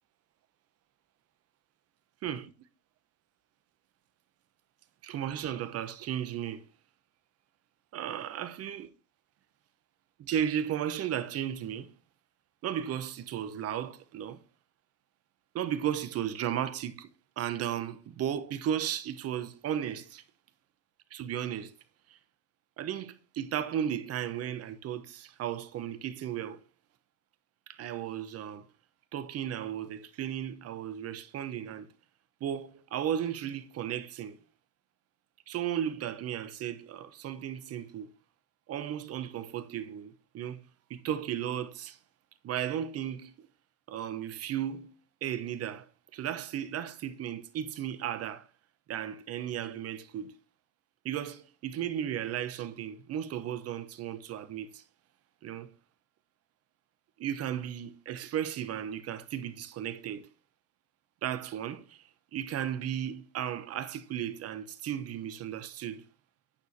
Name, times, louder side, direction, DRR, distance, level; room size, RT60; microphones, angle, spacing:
voice 1, 5.0-6.6 7.9-8.9 10.2-11.9 12.6-14.4 15.5-17.1 17.4-20.2 21.1-21.7 22.1-22.2 22.8-26.6 27.7-28.7 29.1-31.9 32.4-34.4 35.5-38.1 38.7-40.6 40.9-42.0 42.4-43.3 43.9-44.9 45.2-45.9 46.1-48.5 48.9-50.4 51.0-54.8 55.4-55.7 57.2-60.3 61.2-62.0 62.3-66.0, right 10 dB, 30° right, 1.0 m, -35 dB
11.5 x 9.2 x 2.9 m
figure-of-eight pair, 85°, 50 cm